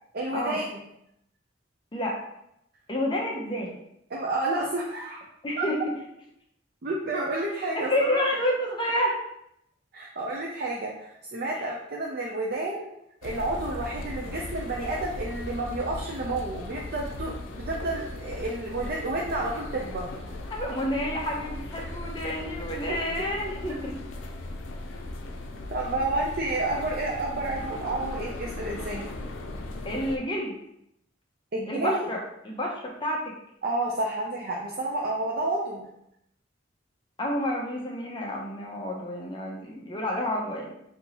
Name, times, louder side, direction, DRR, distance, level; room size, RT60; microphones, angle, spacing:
voice 1, 0.1-0.8 4.1-5.2 5.6-5.7 6.8-8.2 9.9-12.9 13.2-20.4 22.9-23.0 25.7-29.1 31.5-32.0 33.6-35.9, right 2 dB, 55° right, -2 dB, 0.5 m, -30 dB
voice 2, 2.9-3.7 5.4-5.8 7.8-9.2 11.4-11.7 20.5-24.0 29.8-30.6 31.7-33.4 37.2-40.7, left 1 dB, 25° left, -1 dB, 0.7 m, -29 dB
sound 1, 13.2-30.2, left 2 dB, 85° left, 0.5 m, -37 dB
5.3 x 2.8 x 2.9 m, 0.78 s
head